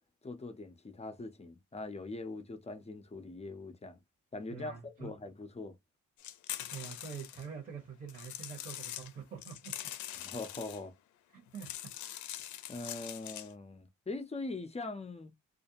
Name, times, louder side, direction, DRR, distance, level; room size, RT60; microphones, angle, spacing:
voice 1, 0.2-4.0 4.3-5.7 10.1-10.9 12.7-15.3, left 3 dB, 20° left, 0.6 m, -42 dB
voice 2, 4.5-5.1 6.7-9.7 11.3-11.7, right 7 dB, 30° right, 1.1 m, -45 dB
sound 1, 6.2-7.5 8.1-9.1 9.4-10.8 11.5-13.5, left 12 dB, 75° left, 0.5 m, -43 dB
2.5 x 2.1 x 2.8 m
cardioid pair, 90°, 30 cm